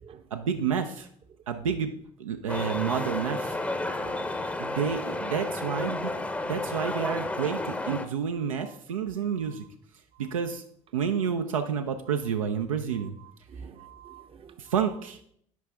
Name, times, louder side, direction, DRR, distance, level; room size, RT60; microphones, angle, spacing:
voice 1, 0.3-1.1 1.5-1.9 2.2-3.6 4.6-6.1 6.4-9.6 10.2-10.6 10.9-13.1 14.6-15.2, right 7 dB, 75° right, 6 dB, 0.5 m, -29 dB
sound 1, 2.5-8.1, left 2 dB, 10° left, 0.7 m, -32 dB
voice 2, 4.0-4.8 13.5-14.5, right 6 dB, 30° right, 9 dB, 0.8 m, -46 dB
9.4 x 5.0 x 3.3 m, 0.65 s
figure-of-eight pair, 60°, 18 cm